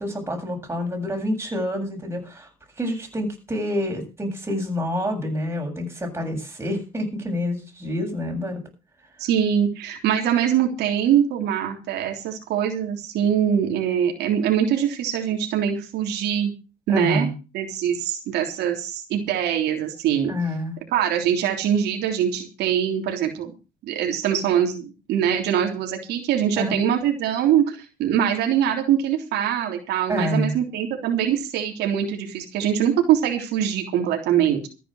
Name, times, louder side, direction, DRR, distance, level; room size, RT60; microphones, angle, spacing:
voice 1, 0.0-2.5 2.8-8.6 16.9-17.3 20.2-20.8 26.6-26.7 30.1-30.5, left 1 dB, 15° right, 2 dB, 7.8 m, -27 dB
voice 2, 9.2-16.5 16.9-20.3 20.9-23.5 23.8-34.7, right 9 dB, 80° right, 3 dB, 3.5 m, -23 dB
14.0 x 9.9 x 6.4 m, 0.32 s
cardioid pair, 110°, 17 cm